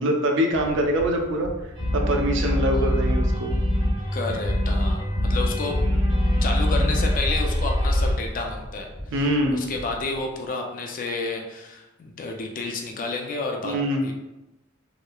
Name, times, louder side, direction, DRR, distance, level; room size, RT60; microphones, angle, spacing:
voice 1, 0.0-1.5 1.9-3.5 6.8-6.9 9.1-9.6 13.6-14.1, equal, 60° right, 2 dB, 0.4 m, -24 dB
sound 1, 0.5-10.5, equal, 35° right, 1.0 m, -39 dB
sound 2, 1.7-8.1, equal, 85° right, 0.9 m, -23 dB
voice 2, 4.1-5.9 6.4-8.9 9.5-13.7 14.0-14.1, left 3 dB, 40° left, 2 dB, 0.4 m, -30 dB
3.0 x 2.0 x 2.2 m, 0.98 s
head